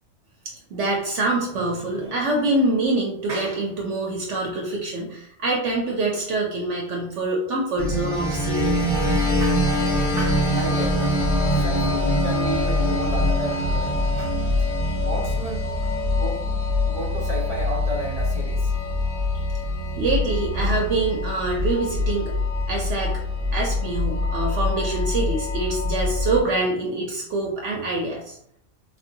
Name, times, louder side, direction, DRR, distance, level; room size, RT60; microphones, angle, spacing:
voice 1, 0.7-8.7 20.0-22.3 22.7-23.2 23.5-28.4, right 2 dB, 65° right, -1 dB, 0.9 m, -25 dB
sound 1, 7.8-26.4, left 1 dB, 30° left, 0.9 m, -24 dB
voice 2, 10.2-11.1 11.6-14.4 15.0-16.4 16.8-18.7, right 2 dB, 45° right, -4 dB, 0.4 m, -32 dB
3.3 x 2.5 x 2.6 m, 0.69 s
omnidirectional pair, 1.4 m